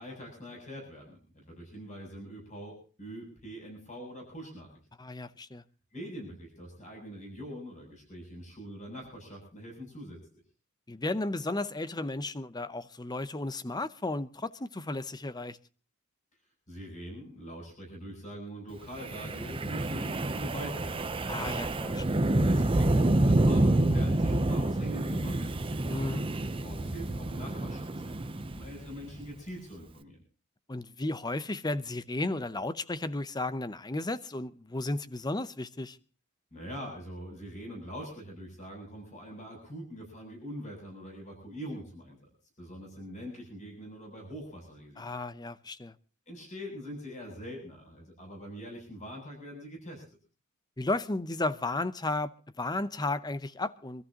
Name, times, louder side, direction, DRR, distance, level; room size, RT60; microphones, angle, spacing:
voice 1, 0.0-4.7 5.9-10.2 16.7-21.1 22.3-25.5 26.6-30.2 36.5-42.3 42.6-45.0 46.3-50.0, equal, 35° left, 7.9 m, -43 dB
voice 2, 5.0-5.6 10.9-15.6 21.3-22.2 25.9-26.2 30.7-36.0 45.0-45.9 50.8-54.0, left 2 dB, 20° left, 0.7 m, -34 dB
Wind, 19.0-29.2, right 1 dB, 25° right, 0.7 m, -28 dB
25.5 x 14.0 x 2.9 m
head